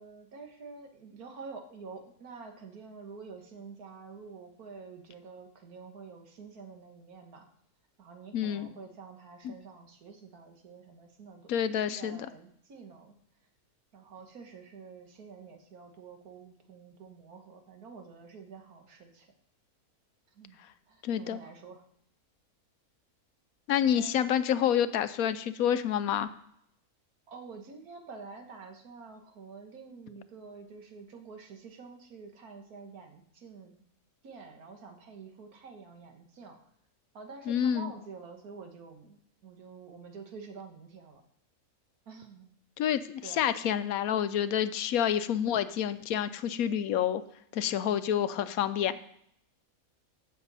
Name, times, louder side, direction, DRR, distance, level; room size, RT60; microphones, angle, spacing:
voice 1, 0.0-7.5 8.0-11.5 11.9-13.1 13.9-19.3 20.3-20.6 20.9-21.9 24.0-24.2 27.3-33.7 34.2-36.6 37.1-41.2 42.1-42.5 43.2-43.4, right 5 dB, 80° right, 4 dB, 1.9 m, -48 dB
voice 2, 8.3-8.7 9.4-9.5 11.5-12.3 21.0-21.4 23.7-26.3 37.5-37.9 42.8-47.2 47.5-49.0, left 9 dB, 75° left, 13 dB, 1.1 m, -28 dB
15.0 x 6.9 x 4.1 m, 0.72 s
omnidirectional pair, 1.6 m